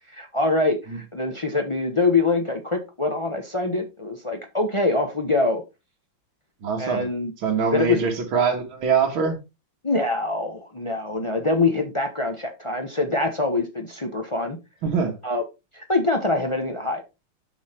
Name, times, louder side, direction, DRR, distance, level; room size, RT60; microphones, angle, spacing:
voice 1, 0.1-5.6 6.8-7.3 7.7-8.0 9.8-14.6 15.2-15.4 15.7-17.0, left 3 dB, 45° left, 0.4 m, -24 dB
voice 2, 6.6-7.1 7.4-9.4 14.8-15.1, right 6 dB, 70° right, 2.5 m, -23 dB
7.1 x 5.4 x 4.2 m
omnidirectional pair, 2.3 m